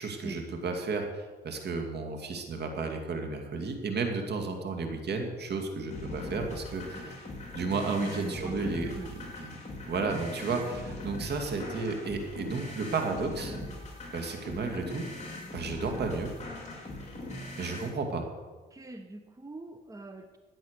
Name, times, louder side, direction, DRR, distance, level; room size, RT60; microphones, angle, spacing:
voice 1, 0.0-7.2 7.5-9.0 9.4-9.6 9.9-13.6 14.1-15.1 15.5-16.3 17.6-18.3, right 4 dB, 55° right, 4 dB, 2.4 m, -33 dB
sound 1, 5.9-17.9, left 2 dB, 35° left, 4.7 m, -41 dB
voice 2, 8.0-8.5 8.8-9.1 17.4-17.5 18.7-20.4, right 2 dB, 15° right, 7 dB, 0.9 m, -42 dB
14.5 x 9.3 x 6.6 m, 1.3 s
cardioid pair, 90°, 20 cm